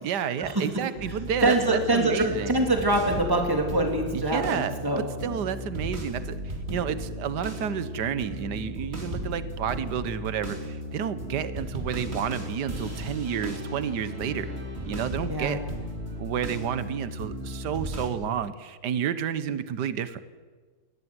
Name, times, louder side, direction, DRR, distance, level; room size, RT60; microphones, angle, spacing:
voice 1, 0.0-2.6 4.1-14.5 14.9-15.6 16.2-20.2, right 8 dB, 60° right, 13 dB, 1.7 m, -30 dB
sound 1, 0.9-18.1, equal, 30° right, 3.1 m, -35 dB
voice 2, 1.4-5.1 15.3-15.6, right 1 dB, 10° right, 3 dB, 3.1 m, -24 dB
22.0 x 17.0 x 9.7 m, 1.5 s
omnidirectional pair, 2.1 m